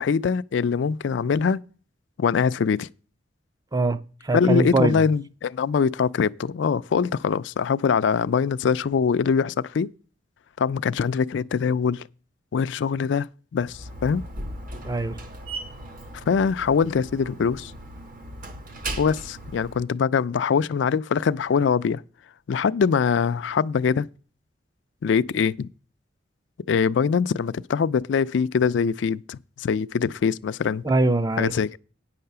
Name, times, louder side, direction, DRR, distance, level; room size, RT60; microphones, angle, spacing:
voice 1, 0.0-1.6 2.2-2.9 4.3-9.9 10.6-12.0 12.5-13.3 13.5-14.2 16.3-17.7 19.0-22.0 22.5-24.1 25.0-25.7 26.7-30.8 31.4-31.8, left 6 dB, 75° left, 0.4 m, -23 dB
voice 2, 3.7-5.1 14.8-15.2 30.8-31.8, right 2 dB, 20° right, 0.5 m, -23 dB
Slam, 13.6-19.8, right 1 dB, 50° right, 1.2 m, -37 dB
9.4 x 5.7 x 6.7 m
head